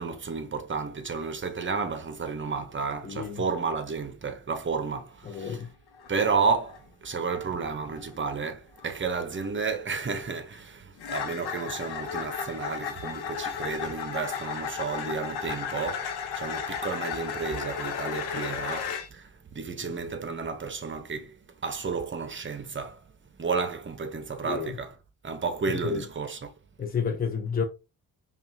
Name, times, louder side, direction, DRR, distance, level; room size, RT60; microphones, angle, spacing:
voice 1, 0.0-5.6 6.1-23.0 23.4-24.9 25.2-26.5, right 5 dB, 30° right, 0.8 m, -32 dB
voice 2, 3.0-3.4 5.2-5.7 24.4-24.7 25.7-26.0 26.8-27.6, left 6 dB, 25° left, 0.7 m, -30 dB
sound 1, 5.3-5.6 5.9-6.2 6.6-6.9 7.3-7.5 7.9-8.1 8.8-8.9 9.3-9.5 11.0-19.1, left 7 dB, 80° left, 0.9 m, -34 dB
5.3 x 2.5 x 2.7 m
cardioid pair, 80°, 39 cm